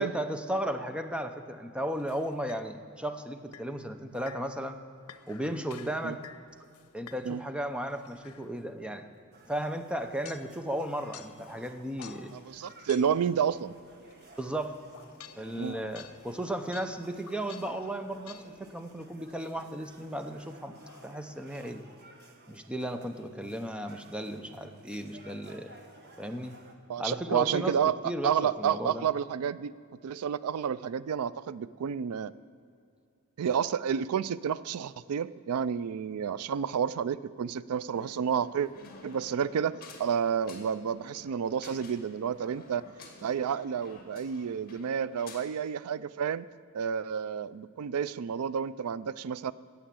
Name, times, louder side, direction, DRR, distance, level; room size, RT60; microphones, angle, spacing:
voice 1, 0.0-4.8 5.3-6.2 6.9-9.0 9.5-12.3 14.4-14.8 15.4-20.8 21.0-21.8 22.5-25.7 26.2-26.5 27.0-27.7 28.0-29.0, right 1 dB, 5° right, 7 dB, 0.7 m, -35 dB
sound 1, 1.9-2.7 3.5-3.7 4.1-7.4 7.9-8.6 9.5-9.6 10.2-13.4 14.1-19.1 19.4-19.6 20.1-21.4, left 7 dB, 85° left, 0.8 m, -51 dB
sound 2, 9.3-26.8, right 2 dB, 50° right, 1.4 m, -55 dB
voice 2, 12.3-13.7 15.6-15.8 26.9-28.0 28.2-29.7 30.0-32.3 33.4-38.7 39.0-42.8 43.2-46.5 46.7-49.5, right 7 dB, 85° right, 17 dB, 0.4 m, -30 dB
sound 3, 37.9-45.6, left 2 dB, 45° left, 2.0 m, -51 dB
17.5 x 7.0 x 7.6 m, 2.5 s
head